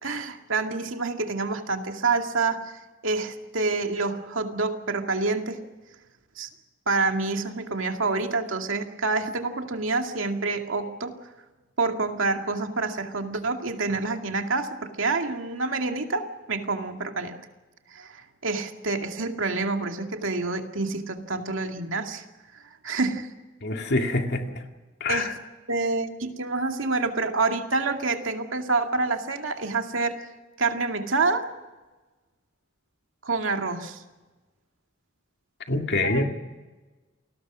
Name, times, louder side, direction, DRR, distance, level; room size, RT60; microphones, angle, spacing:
voice 1, 0.0-5.6 6.4-6.5 6.9-11.1 11.8-17.4 17.9-22.2 22.8-23.3 25.1-25.3 25.7-30.2 30.6-31.5 33.2-34.0 36.0-36.3, right 3 dB, 80° right, 4 dB, 2.2 m, -27 dB
voice 2, 23.6-24.6 25.0-25.4 35.7-36.3, left 2 dB, 60° left, 4 dB, 2.3 m, -25 dB
29.0 x 20.0 x 6.2 m, 1.2 s
head